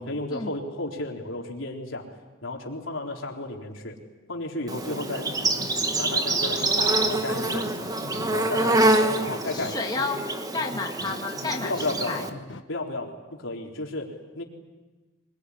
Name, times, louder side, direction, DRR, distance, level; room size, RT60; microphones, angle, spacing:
voice 1, 0.0-2.1 2.4-3.9 4.3-5.3 5.6-7.8 8.3-8.9 9.2-9.8 11.6-12.3 12.7-14.4, left 2 dB, 90° left, 0 dB, 4.1 m, -33 dB
Insect, 4.7-12.3, right 2 dB, 20° right, 1.5 m, -26 dB
sound 1, 5.3-12.6, left 2 dB, 70° left, 1.3 m, -42 dB
voice 2, 9.5-10.2 10.5-12.3, left 3 dB, 20° left, 0 dB, 2.1 m, -31 dB
25.0 x 21.5 x 9.9 m, 1.2 s
head